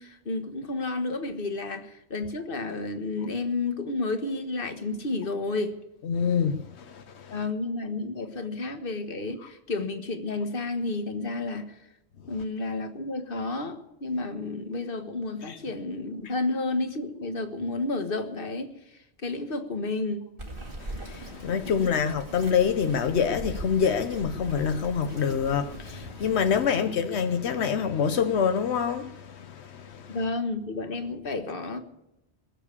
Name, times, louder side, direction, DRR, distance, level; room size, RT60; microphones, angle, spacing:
voice 1, 0.0-5.8 7.3-11.7 12.3-18.7 19.2-20.2 26.7-26.9 30.1-31.8, left 3 dB, 55° left, 1.6 m, -31 dB
voice 2, 6.0-7.3 15.5-15.6 21.0-30.2, left 7 dB, 85° left, 1.1 m, -26 dB
Bird vocalization bird call bird song, 20.4-26.7, right 1 dB, 55° right, 2.5 m, -41 dB
21.5 x 7.3 x 8.4 m
omnidirectional pair, 1.1 m